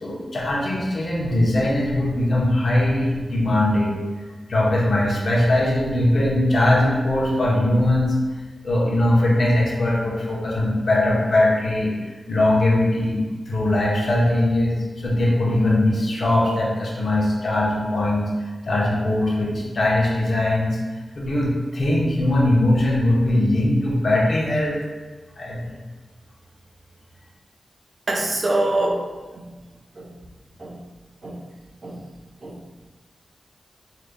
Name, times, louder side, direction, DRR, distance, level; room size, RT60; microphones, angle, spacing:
voice 1, 0.0-4.0 4.5-8.1 8.6-11.9 12.3-18.3 18.7-20.8 21.1-24.8 25.4-25.6, left 1 dB, 55° left, -4 dB, 0.9 m, -20 dB
voice 2, 28.1-29.0 30.0-30.1 30.6-30.8 31.2-31.3 31.8-32.0 32.4-32.5, right 2 dB, 45° right, 0 dB, 0.5 m, -23 dB
4.9 x 2.8 x 2.2 m, 1.3 s
wide cardioid pair, 100°, 0 cm